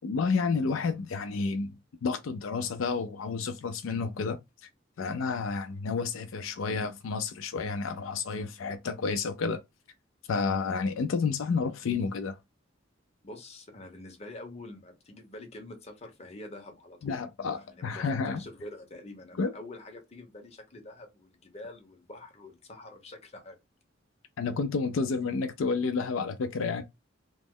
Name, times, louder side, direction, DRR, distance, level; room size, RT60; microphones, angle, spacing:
voice 1, 0.0-1.7 2.0-4.7 5.0-9.6 10.3-12.4 17.0-18.4 19.4-19.5 24.4-26.8, left 4 dB, 85° left, 0.4 m, -30 dB
voice 2, 13.2-23.6, left 1 dB, 35° left, 0.8 m, -46 dB
3.0 x 2.0 x 3.6 m
head